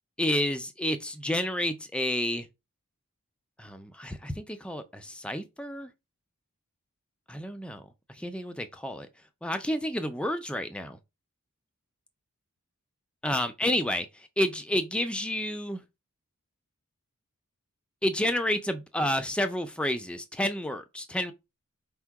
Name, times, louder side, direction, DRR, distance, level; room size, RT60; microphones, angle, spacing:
voice 1, 0.2-2.5 3.6-5.9 7.3-9.1 9.4-11.0 13.2-15.8 18.0-21.3, left 1 dB, 5° left, 0.4 m, -30 dB
4.4 x 2.1 x 4.6 m
head